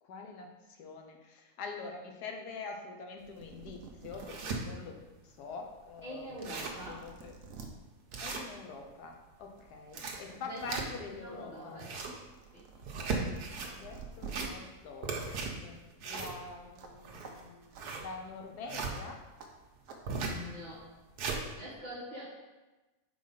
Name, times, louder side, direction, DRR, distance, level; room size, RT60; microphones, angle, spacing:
voice 1, 0.0-4.9 5.2-7.3 8.2-11.8 13.7-15.3 15.6-17.7 18.0-19.2, left 4 dB, 90° left, 3 dB, 1.4 m, -45 dB
sound 1, 3.1-3.2 3.4-4.5 5.0-5.1 6.0-6.1 6.4-7.7 9.0-9.2 9.6-10.6 11.0-14.5 16.8-17.0 17.2-17.3 17.7-17.8 18.9-19.0 19.4-19.5 19.9-20.0, right 6 dB, 60° right, 1.0 m, -49 dB
sound 2, 3.3-3.4 3.9-4.6 5.1-5.2 5.5-5.6 6.0-6.1 6.3-6.9 7.3-7.4 8.1-8.9 9.7-11.2 11.6-12.2 12.8-13.7 14.1-14.8 15.0-18.9 20.1-20.4 20.9-21.4, right 4 dB, 80° right, 1.4 m, -37 dB
voice 2, 6.0-7.1 10.5-11.9 12.5-12.7 20.1-20.9 21.6-22.2, equal, 25° left, -11 dB, 2.1 m, -44 dB
4.6 x 4.3 x 5.5 m, 1.1 s
omnidirectional pair, 1.7 m